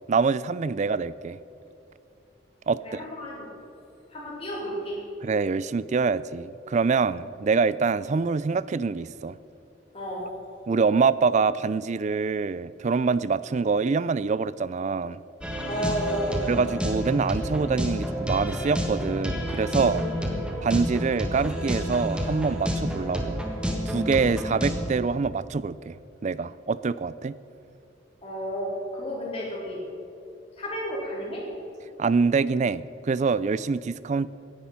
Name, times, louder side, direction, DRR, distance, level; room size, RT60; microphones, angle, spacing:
voice 1, 0.1-1.4 2.7-3.0 5.2-9.4 10.7-15.2 16.5-20.0 20.6-23.4 23.9-26.0 26.2-27.4 32.0-34.3, right 4 dB, 40° right, 17 dB, 0.4 m, -25 dB
voice 2, 2.8-3.5 4.1-5.0 9.9-10.3 15.7-16.4 19.7-20.3 28.2-29.8 30.6-31.4, equal, 30° left, -5 dB, 4.2 m, -32 dB
sound 1, 15.4-24.9, equal, 5° right, 1.6 m, -29 dB
17.5 x 10.5 x 5.7 m, 2.8 s
head